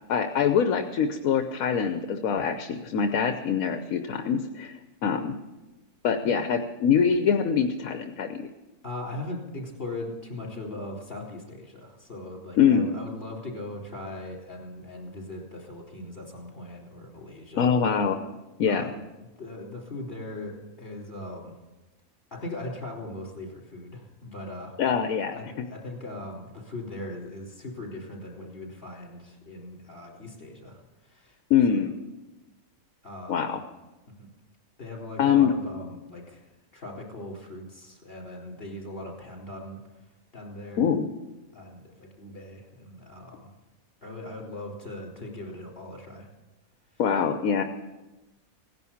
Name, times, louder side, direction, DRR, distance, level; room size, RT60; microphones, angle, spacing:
voice 1, 0.1-5.4 6.0-8.5 12.6-13.0 17.6-18.2 18.6-18.9 24.8-25.7 31.5-31.9 33.3-33.6 35.2-35.5 40.8-41.1 47.0-47.6, left 7 dB, 80° left, 7 dB, 1.2 m, -24 dB
voice 2, 8.8-17.7 18.7-21.6 22.3-24.8 25.3-31.4 31.7-31.8 33.0-33.5 34.2-34.3 34.8-36.5 36.7-39.8 40.3-40.8 41.5-43.5 44.0-46.3 46.9-47.0, left 1 dB, 40° left, -1 dB, 4.3 m, -39 dB
17.5 x 11.0 x 7.1 m, 1.1 s
omnidirectional pair, 1.5 m